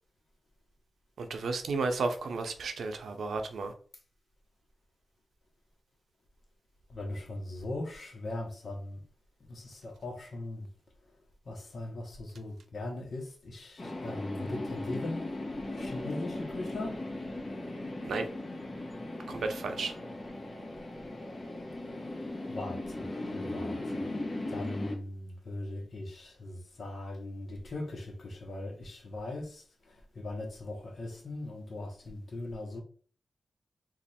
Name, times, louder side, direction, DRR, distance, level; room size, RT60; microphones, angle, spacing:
voice 1, 1.2-3.7 18.0-18.3 19.3-19.9, right 3 dB, 90° right, 0.5 m, -33 dB
voice 2, 6.9-9.0 9.4-10.7 11.4-15.3 15.7-17.0 22.5-24.2 24.5-32.8, left 2 dB, 65° left, 1.0 m, -40 dB
sound 1, 13.8-25.0, left 2 dB, 40° left, 1.0 m, -38 dB
3.0 x 2.5 x 4.2 m
cardioid pair, 80°, 0 cm